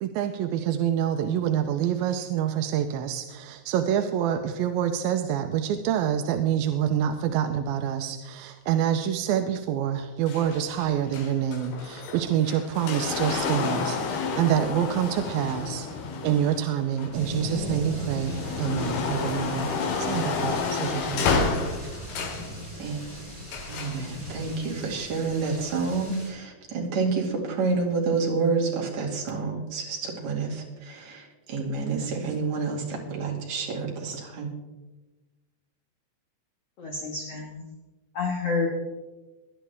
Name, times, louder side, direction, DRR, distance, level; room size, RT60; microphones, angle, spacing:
voice 1, 0.0-21.5, right 9 dB, 80° right, 7 dB, 2.4 m, -27 dB
sound 1, 10.3-17.5 17.9-22.5 23.5-24.0 24.9-25.0, left 4 dB, 80° left, 3.5 m, -30 dB
sound 2, 17.1-26.3, left 1 dB, 5° right, 4.9 m, -38 dB
voice 2, 23.7-34.5, right 4 dB, 50° right, -2 dB, 3.5 m, -29 dB
voice 3, 36.8-37.6 38.1-38.7, left 4 dB, 50° left, -1 dB, 2.1 m, -29 dB
20.0 x 11.0 x 3.5 m, 1.2 s
omnidirectional pair, 4.4 m